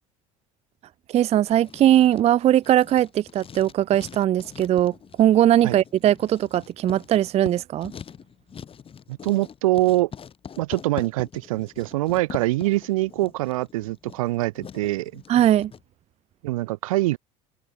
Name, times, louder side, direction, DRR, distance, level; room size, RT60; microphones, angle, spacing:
voice 1, 1.1-7.9 15.3-15.7, right 12 dB, 35° right, 0.4 m, -20 dB
Writing, 1.5-15.8, left 7 dB, 30° left, 1.0 m, -43 dB
voice 2, 9.1-10.1 10.6-15.2 16.4-17.2, right 18 dB, 75° right, 0.8 m, -24 dB
hypercardioid pair, 65°, 18 cm